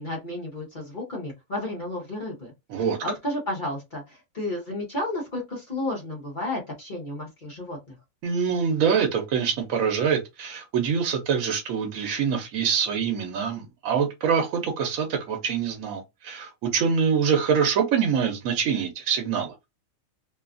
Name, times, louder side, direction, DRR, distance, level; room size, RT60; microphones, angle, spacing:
voice 1, 0.0-2.5 3.0-8.0, left 1 dB, 40° left, 0.9 m, -32 dB
voice 2, 8.2-19.5, right 7 dB, 75° right, 1.0 m, -25 dB
2.8 x 2.3 x 2.4 m
omnidirectional pair, 1.4 m